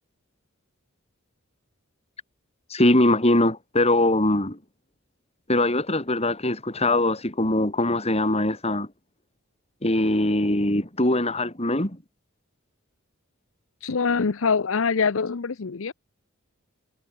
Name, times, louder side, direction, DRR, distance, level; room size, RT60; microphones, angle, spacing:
voice 1, 2.7-4.6 5.5-8.9 9.8-12.0, left 1 dB, 30° left, 4.8 m, -22 dB
voice 2, 13.8-15.9, left 5 dB, 70° left, 0.7 m, -24 dB
head